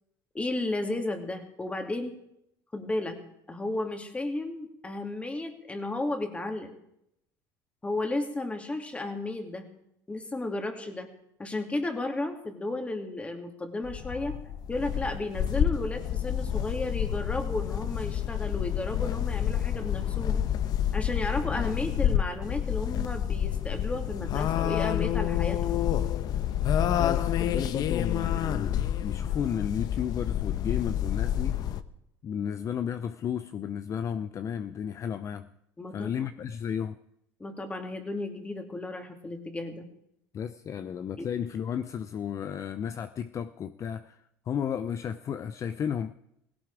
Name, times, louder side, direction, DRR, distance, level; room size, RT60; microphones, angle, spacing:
voice 1, 0.3-2.1 2.7-3.2 3.5-6.7 7.8-9.7 10.1-11.1 11.4-14.3 14.7-20.4 20.9-25.8 35.8-36.1 37.4-39.9, left 2 dB, 15° left, 2.7 m, -33 dB
sound 1, 13.8-31.8, left 10 dB, 55° left, 0.9 m, -28 dB
voice 2, 27.0-31.6 32.2-35.5 35.9-37.0 40.3-44.2 44.5-46.1, left 8 dB, 40° left, 0.6 m, -33 dB
17.0 x 16.5 x 4.9 m
supercardioid pair, 105°, 8 cm